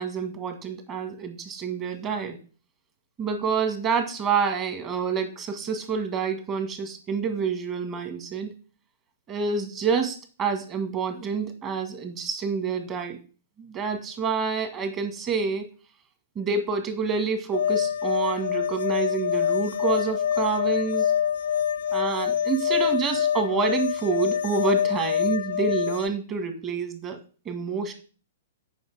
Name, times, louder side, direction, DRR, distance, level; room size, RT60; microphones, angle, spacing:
voice 1, 0.0-2.4 3.2-8.5 9.3-13.2 13.6-15.7 16.4-21.1 21.9-27.2 27.5-27.9, right 5 dB, 25° right, 5 dB, 1.9 m, -28 dB
sound 1, 17.5-26.1, left 9 dB, 65° left, 0.3 m, -25 dB
7.8 x 5.6 x 4.9 m, 0.38 s
figure-of-eight pair, 115°, 0 cm